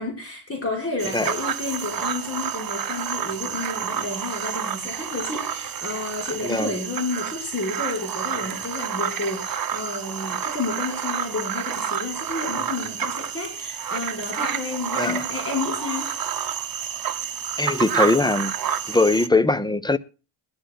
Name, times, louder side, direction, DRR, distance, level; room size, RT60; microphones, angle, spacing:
voice 1, 0.0-16.1, left 3 dB, 30° left, 5.6 m, -31 dB
sound 1, 1.0-19.3, right 8 dB, 50° right, 1.2 m, -29 dB
voice 2, 17.6-18.6 18.9-20.0, left 2 dB, 10° left, 0.6 m, -21 dB
21.5 x 13.0 x 2.2 m
cardioid pair, 120°, 43 cm